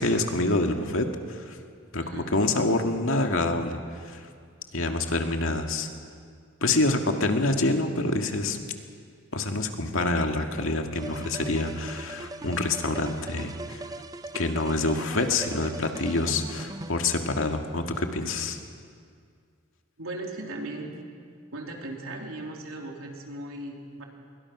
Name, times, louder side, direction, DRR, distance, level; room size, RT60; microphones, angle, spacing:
voice 1, 0.0-1.6 1.9-4.2 4.7-5.9 6.6-8.6 9.3-13.8 14.3-18.6, left 2 dB, 75° left, 4 dB, 2.1 m, -26 dB
voice 2, 2.0-2.3 20.0-21.0 21.5-24.0, right 2 dB, 80° right, 1 dB, 3.5 m, -37 dB
sound 1, 10.9-16.9, right 1 dB, 15° right, 0.7 m, -39 dB
27.5 x 23.0 x 6.2 m, 2.2 s
head